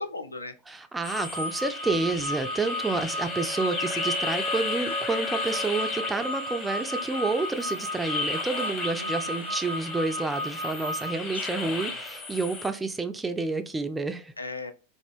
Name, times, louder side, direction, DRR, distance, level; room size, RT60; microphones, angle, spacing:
voice 1, 0.0-0.5 9.0-9.5 11.4-11.9 14.4-14.7, left 3 dB, 80° left, 0.3 m, -38 dB
voice 2, 0.7-14.3, right 3 dB, 10° right, 0.3 m, -29 dB
sound 1, 1.0-12.7, left 3 dB, 20° left, 0.7 m, -35 dB
sound 2, 1.1-11.1, equal, 70° right, 0.5 m, -34 dB
Wind instrument woodwind instrument, 2.7-7.3, left 1 dB, 55° left, 0.7 m, -40 dB
2.7 x 2.1 x 2.3 m
figure-of-eight pair, 90°, 0 cm